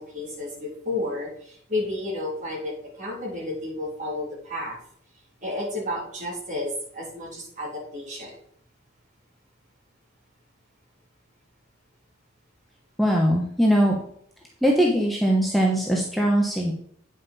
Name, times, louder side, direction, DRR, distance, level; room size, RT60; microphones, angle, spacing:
voice 1, 0.0-4.8 5.4-8.3, left 2 dB, 40° right, -3 dB, 2.9 m, -32 dB
voice 2, 13.0-14.0 14.6-16.7, equal, ahead, -2 dB, 0.9 m, -21 dB
9.1 x 5.5 x 4.1 m, 0.65 s
head